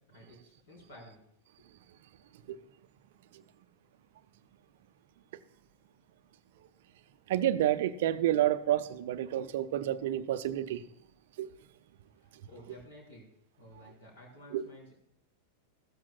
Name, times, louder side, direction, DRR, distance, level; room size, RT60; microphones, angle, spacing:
voice 1, 0.1-1.2 1.6-1.7 12.2-13.3 13.6-15.0, equal, 55° left, 4.6 m, -53 dB
voice 2, 7.3-10.8 11.4-11.5 14.5-14.6, right 12 dB, 55° right, 0.6 m, -29 dB
15.5 x 13.0 x 2.3 m
figure-of-eight pair, 90°, 0 cm